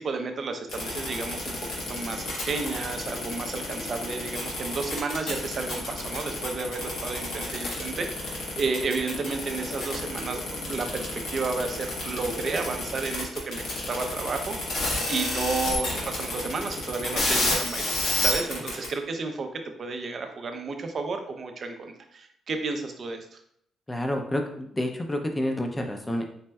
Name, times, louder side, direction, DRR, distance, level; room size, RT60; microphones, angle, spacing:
voice 1, 0.0-1.6 1.9-13.6 13.9-19.5 19.8-23.4, right 4 dB, 50° right, 5 dB, 0.5 m, -32 dB
sound 1, 0.7-18.9, left 2 dB, 80° left, 1.2 m, -30 dB
voice 2, 23.9-26.2, left 1 dB, 15° left, 3 dB, 0.6 m, -29 dB
4.2 x 3.2 x 2.2 m, 0.70 s
cardioid pair, 90°, 0 cm